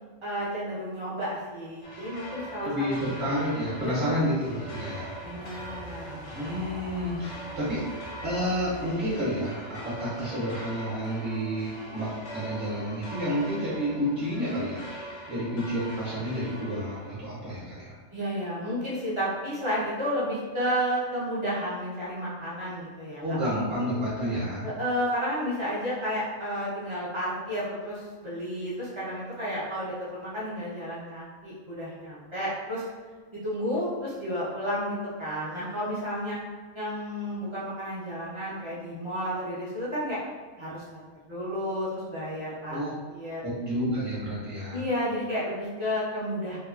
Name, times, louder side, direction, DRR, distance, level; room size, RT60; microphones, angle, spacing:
voice 1, 0.2-3.1 3.8-4.2 5.2-6.3 18.1-23.2 24.6-32.8 33.3-36.4 36.7-40.2 40.6-40.8 41.3-43.5 44.7-46.6, equal, 30° right, -9 dB, 0.6 m, -32 dB
sound 1, 1.8-17.1, right 1 dB, 75° left, 0.4 m, -41 dB
voice 2, 2.6-5.1 6.3-7.8 8.2-17.9 23.2-24.7 42.7-42.9 43.4-44.8, equal, 45° right, -9 dB, 1.0 m, -30 dB
3.0 x 2.3 x 2.4 m, 1.4 s
omnidirectional pair, 1.5 m